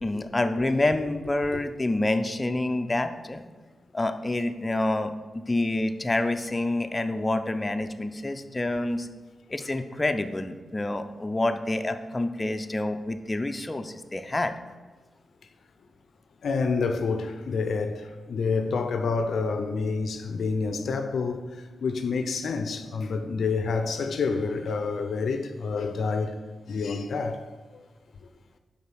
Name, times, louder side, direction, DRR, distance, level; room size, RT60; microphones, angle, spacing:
voice 1, 0.0-3.4 3.9-9.1 9.5-14.5, left 2 dB, 30° left, 0.5 m, -27 dB
voice 2, 16.4-26.4 26.7-27.4 27.7-27.8, left 4 dB, 75° left, 0.5 m, -28 dB
5.4 x 4.2 x 6.1 m
supercardioid pair, 40°, 0 cm